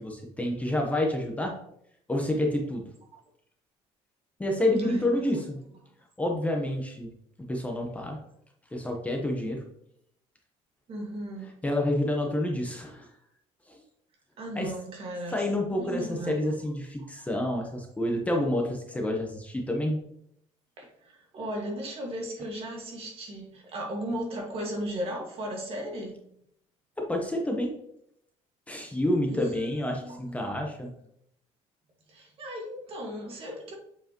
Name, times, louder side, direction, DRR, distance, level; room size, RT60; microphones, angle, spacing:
voice 1, 0.0-1.5 2.1-2.8 4.4-5.6 6.2-7.1 7.5-8.2 8.7-9.6 11.6-13.1 13.7-13.8 14.5-14.7 15.3-20.0 27.0-27.7 28.7-30.9, left 1 dB, 10° left, 1.0 m, -28 dB
voice 2, 4.8-5.1 10.9-11.6 14.4-15.4 15.8-16.5 20.8-26.2 29.3-30.5 30.9-31.0 32.1-33.7, right 1 dB, 45° right, 2.0 m, -36 dB
7.8 x 4.8 x 3.0 m
cardioid pair, 125°, 13 cm